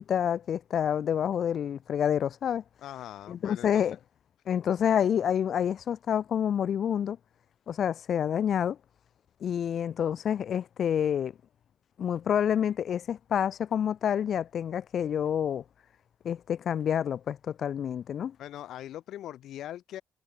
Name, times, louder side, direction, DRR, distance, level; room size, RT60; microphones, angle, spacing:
voice 1, 0.0-2.6 3.3-4.0 4.5-7.2 7.7-8.8 9.4-11.3 12.0-15.6 16.2-18.3, left 9 dB, 60° left, 1.1 m, -28 dB
voice 2, 2.8-3.8 18.4-20.0, left 12 dB, 80° left, 7.0 m, -41 dB
cardioid pair, 90°, 0 cm